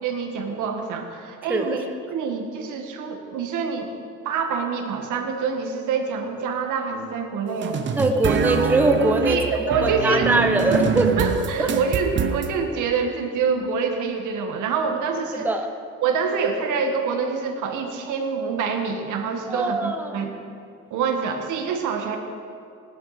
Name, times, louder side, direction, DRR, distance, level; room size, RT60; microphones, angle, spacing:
voice 1, 0.0-1.8 2.1-3.9 4.3-7.8 9.3-10.3 10.7-10.8 11.2-15.5 16.0-20.3 20.9-22.2, right 5 dB, 90° right, 4 dB, 1.9 m, -26 dB
sound 1, 7.6-12.5, right 7 dB, 40° right, 0.9 m, -25 dB
voice 2, 8.0-11.1 11.6-11.7 15.3-15.7 19.5-20.2, right 2 dB, 5° right, 5 dB, 0.8 m, -22 dB
18.5 x 12.0 x 5.1 m, 2.5 s
cardioid pair, 170°, 29 cm